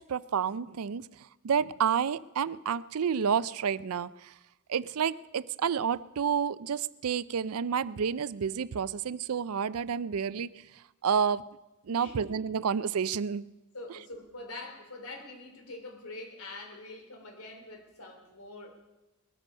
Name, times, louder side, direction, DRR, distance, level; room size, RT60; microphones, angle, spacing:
voice 1, 0.0-4.3 4.7-10.5 11.0-11.4 11.9-13.4, right 7 dB, 75° right, 18 dB, 0.4 m, -30 dB
voice 2, 13.7-18.7, left 2 dB, 80° left, 5 dB, 3.2 m, -44 dB
20.0 x 13.5 x 5.4 m, 1.0 s
head